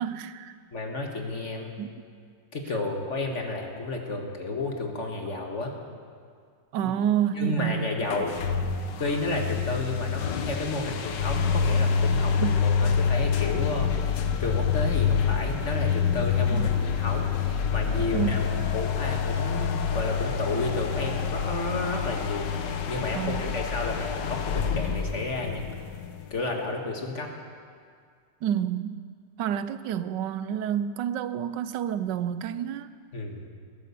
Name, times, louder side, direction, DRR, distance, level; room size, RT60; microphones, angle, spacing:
voice 1, 0.0-0.6 1.8-1.9 6.7-7.9 12.4-12.5 16.5-16.7 18.1-18.4 23.1-23.6 28.4-29.0 29.4-32.9, right 9 dB, 80° right, 13 dB, 1.3 m, -29 dB
voice 2, 0.7-1.7 2.5-5.7 6.8-6.9 7.3-8.4 9.0-18.4 18.7-22.5 22.9-25.7 26.3-27.3 33.1-33.5, left 2 dB, 45° left, 2 dB, 1.8 m, -31 dB
sound 1, 8.1-26.6, left 6 dB, 85° left, 1.6 m, -27 dB
18.5 x 11.0 x 7.0 m, 2.1 s
omnidirectional pair, 1.9 m